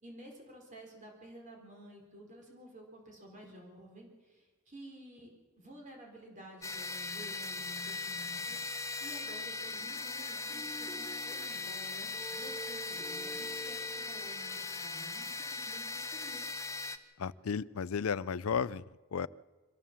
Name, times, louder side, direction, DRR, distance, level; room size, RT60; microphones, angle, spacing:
voice 1, 0.0-16.5, right 1 dB, 35° right, 1 dB, 4.0 m, -52 dB
sound 1, 6.6-17.0, left 3 dB, 15° left, 0.9 m, -39 dB
sound 2, 9.6-10.0 10.5-14.8, right 2 dB, 15° right, 5.8 m, -49 dB
voice 2, 17.2-18.8 19.1-19.3, left 6 dB, 75° left, 19 dB, 0.5 m, -33 dB
24.0 x 15.0 x 7.4 m, 1.4 s
head